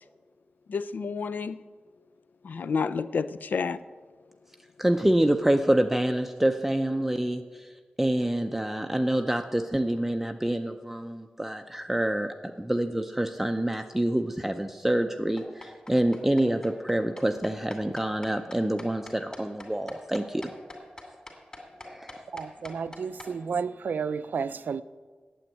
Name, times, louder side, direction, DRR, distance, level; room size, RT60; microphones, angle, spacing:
voice 1, 0.7-1.6 2.4-3.8, left 5 dB, 70° left, 0.4 m, -29 dB
voice 2, 4.8-7.4 8.0-20.4 21.8-22.2, right 1 dB, 10° right, 0.5 m, -26 dB
sound 1, 15.4-23.3, left 2 dB, 25° left, 2.5 m, -44 dB
voice 3, 22.3-24.8, right 6 dB, 75° right, 0.4 m, -31 dB
8.9 x 7.8 x 9.2 m
wide cardioid pair, 115°, 3 cm